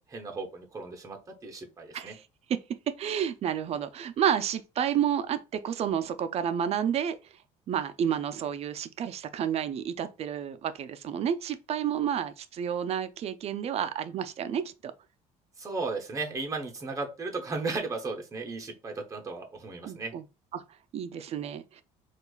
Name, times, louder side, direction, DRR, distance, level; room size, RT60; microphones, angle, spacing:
voice 1, 0.0-2.2 15.6-20.1, right 3 dB, 20° right, 0.9 m, -35 dB
voice 2, 3.0-7.2 7.7-14.9 19.8-20.2 20.5-20.6 20.9-21.8, right 9 dB, 45° right, 0.4 m, -30 dB
4.3 x 2.4 x 2.3 m
cardioid pair, 115°, 15 cm